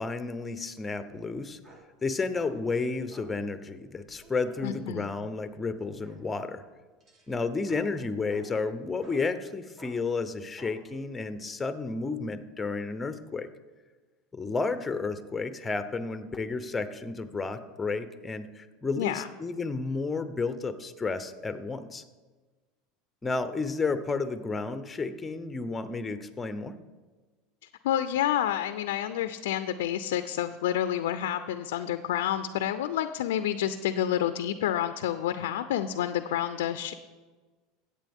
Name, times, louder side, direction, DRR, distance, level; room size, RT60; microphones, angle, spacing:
voice 1, 0.0-1.6 2.0-6.6 7.3-13.5 14.3-22.0 23.2-26.7, left 4 dB, 15° left, 11 dB, 0.7 m, -32 dB
sound 1, 1.6-1.9 2.3-2.6 3.1-3.4 3.9-4.7 5.7-6.3 7.0-8.5 9.0-9.2 9.8-10.0 10.6-10.8, right 2 dB, 35° right, 2.0 m, -52 dB
voice 2, 4.6-5.1 19.0-19.3 27.8-36.9, left 11 dB, 85° left, 11 dB, 0.4 m, -29 dB
13.5 x 8.5 x 3.6 m, 1.3 s
supercardioid pair, 115°, 0 cm